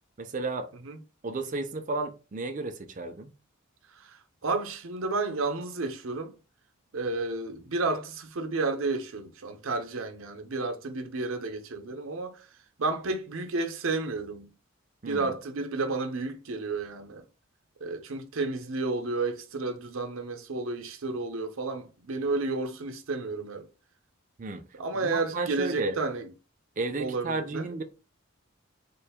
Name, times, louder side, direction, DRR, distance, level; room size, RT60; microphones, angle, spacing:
voice 1, 0.2-0.7 1.2-3.3 15.0-15.3 24.4-24.6 24.9-26.0 26.8-27.8, right 3 dB, 35° right, 0.5 m, -33 dB
voice 2, 3.9-6.3 6.9-12.5 12.8-14.5 15.1-17.2 17.8-23.7 24.8-26.3 27.0-27.7, right 3 dB, 75° right, 0.7 m, -31 dB
3.7 x 2.5 x 3.4 m
head